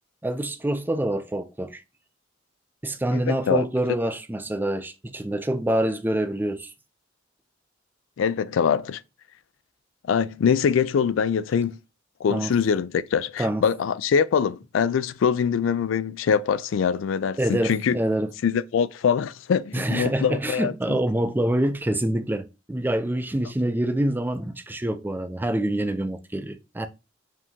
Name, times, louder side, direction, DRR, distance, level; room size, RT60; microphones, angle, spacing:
voice 1, 0.2-1.8 2.8-6.7 12.3-12.5 13.4-13.6 17.4-18.3 19.7-26.9, right 1 dB, 10° right, 0.4 m, -26 dB
voice 2, 3.1-3.6 8.2-9.0 10.1-11.8 12.2-18.0 18.4-21.0, left 7 dB, 80° left, 0.3 m, -23 dB
5.0 x 2.8 x 3.5 m
head